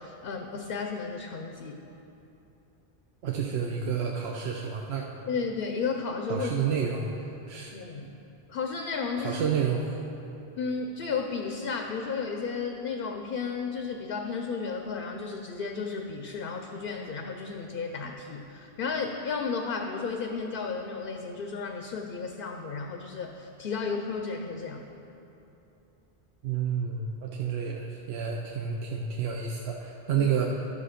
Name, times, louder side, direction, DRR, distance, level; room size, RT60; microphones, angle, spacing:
voice 1, 0.0-1.8 5.3-6.6 7.7-8.1 8.5-9.4 10.6-24.8 30.1-30.3, left 5 dB, 60° left, 4 dB, 0.7 m, -33 dB
voice 2, 3.2-5.0 6.3-7.8 9.2-10.0 26.4-30.7, right 6 dB, 70° right, 0 dB, 0.9 m, -30 dB
11.5 x 6.4 x 5.0 m, 2.9 s
omnidirectional pair, 1.2 m